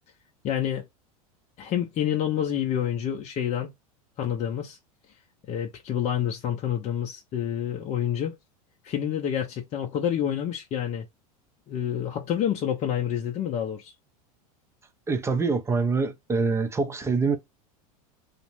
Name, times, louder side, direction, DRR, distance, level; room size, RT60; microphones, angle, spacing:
voice 1, 0.4-0.8 1.6-3.7 4.2-4.8 5.5-8.3 8.8-11.1 11.7-13.9, left 9 dB, 35° left, 0.5 m, -28 dB
voice 2, 15.1-17.4, right 4 dB, 15° right, 0.5 m, -25 dB
2.5 x 2.0 x 2.9 m
hypercardioid pair, 105°, 19 cm